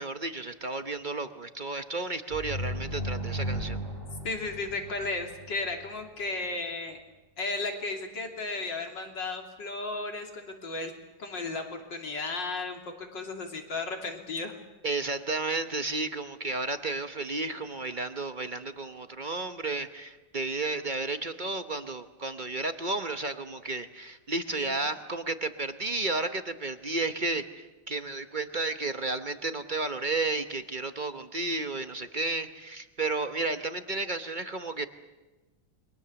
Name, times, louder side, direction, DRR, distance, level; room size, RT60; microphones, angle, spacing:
voice 1, 0.0-3.8 14.8-34.9, right 3 dB, 35° right, 9 dB, 0.8 m, -32 dB
sound 1, 2.3-5.9, equal, 30° left, 4.0 m, -35 dB
voice 2, 4.2-7.0 7.4-10.9 11.2-14.5 24.5-24.7, left 3 dB, 70° left, 3 dB, 3.6 m, -34 dB
29.0 x 23.0 x 7.0 m, 1.2 s
omnidirectional pair, 2.1 m